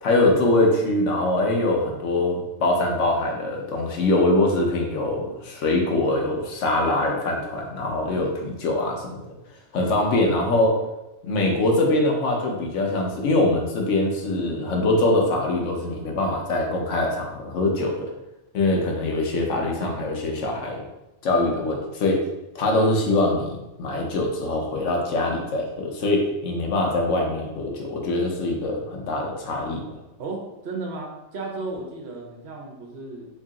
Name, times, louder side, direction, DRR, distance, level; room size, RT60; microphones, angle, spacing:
voice 1, 0.0-9.2 9.7-10.8 11.2-18.1 18.5-20.8 21.2-22.2 22.5-29.9, left 2 dB, 90° left, 1 dB, 1.1 m, -23 dB
voice 2, 30.2-33.3, right 3 dB, 65° right, 0 dB, 0.9 m, -34 dB
3.0 x 2.8 x 3.6 m, 0.95 s
omnidirectional pair, 1.2 m